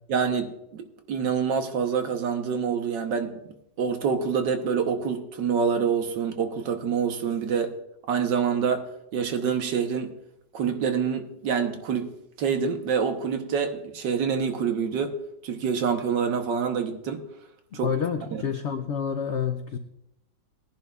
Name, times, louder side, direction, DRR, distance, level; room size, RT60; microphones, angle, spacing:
voice 1, 0.1-3.4 3.8-7.8 8.1-10.1 10.5-12.1 12.4-17.3 17.7-17.9 18.3-18.4, right 6 dB, 75° right, 1.7 m, -26 dB
voice 2, 17.7-19.8, left 7 dB, 70° left, 0.6 m, -28 dB
20.0 x 10.5 x 2.4 m
omnidirectional pair, 2.0 m